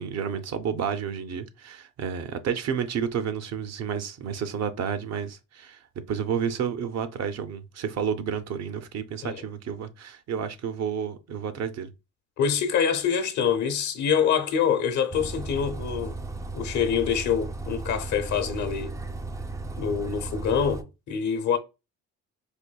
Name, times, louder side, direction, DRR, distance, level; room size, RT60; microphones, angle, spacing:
voice 1, 0.0-5.8 6.1-11.9, right 7 dB, 60° right, 0.6 m, -30 dB
voice 2, 12.4-16.2 16.5-18.9 19.8-21.6, left 7 dB, 70° left, 0.8 m, -25 dB
Bus, 15.1-20.8, right 3 dB, 10° right, 0.3 m, -35 dB
4.5 x 2.6 x 2.2 m
cardioid pair, 90°, 30 cm